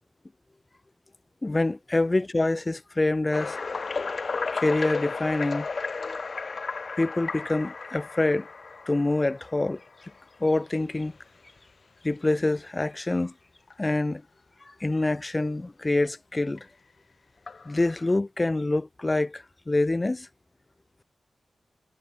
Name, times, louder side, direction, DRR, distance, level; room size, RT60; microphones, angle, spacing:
voice 1, 1.4-3.6 4.5-5.7 6.0-6.2 7.0-8.5 8.9-9.8 10.4-11.1 12.0-13.3 13.8-14.2 14.6-16.7 17.7-20.3, left 2 dB, 20° left, 4.1 m, -26 dB
sound 1, 3.3-10.2 10.8-11.0 11.6-11.7 12.2-12.3 13.7-13.8 16.6-16.7 17.5-18.2, left 4 dB, 45° left, 4.6 m, -34 dB
wide cardioid pair, 115°, 0 cm